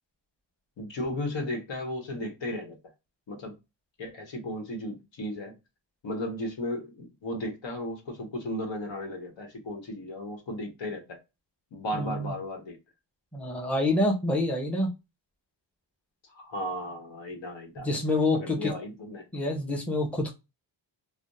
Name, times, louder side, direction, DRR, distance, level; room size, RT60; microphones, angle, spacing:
voice 1, 0.8-2.8 3.3-3.6 4.0-5.6 6.0-11.2 11.7-12.8 16.3-17.9 18.3-19.3, left 1 dB, 75° left, 1.1 m, -35 dB
voice 2, 11.9-12.3 13.3-14.9 17.8-18.7 19.3-20.3, left 2 dB, 5° left, 0.7 m, -27 dB
3.3 x 2.1 x 2.6 m
wide cardioid pair, 150°, 45 cm